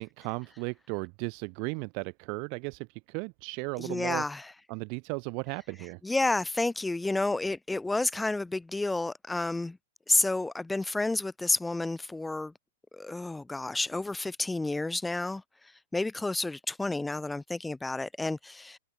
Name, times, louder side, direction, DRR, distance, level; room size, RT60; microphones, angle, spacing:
voice 1, 0.0-4.2 4.7-6.0, right 38 dB, 40° right, 3.9 m, -36 dB
voice 2, 3.8-4.5 6.0-9.8 10.1-12.5 12.9-18.8, left 2 dB, 5° left, 4.4 m, -30 dB
figure-of-eight pair, 105°, 0 cm